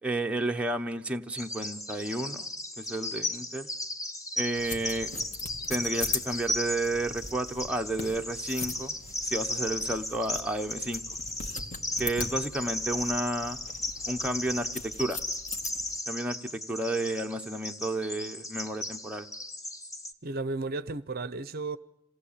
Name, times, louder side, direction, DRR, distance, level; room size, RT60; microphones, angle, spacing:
voice 1, 0.0-3.7 4.4-5.1 5.7-9.0 9.2-11.0 12.0-13.6 14.1-15.2 16.1-19.3, right 1 dB, 5° right, 1.0 m, -31 dB
Bird vocalization bird call bird song, 1.4-20.1, left 1 dB, 15° left, 1.4 m, -36 dB
sound 1, 4.6-16.0, left 3 dB, 35° left, 2.0 m, -40 dB
voice 2, 20.2-21.8, right 3 dB, 45° right, 0.8 m, -33 dB
27.5 x 18.0 x 8.5 m
head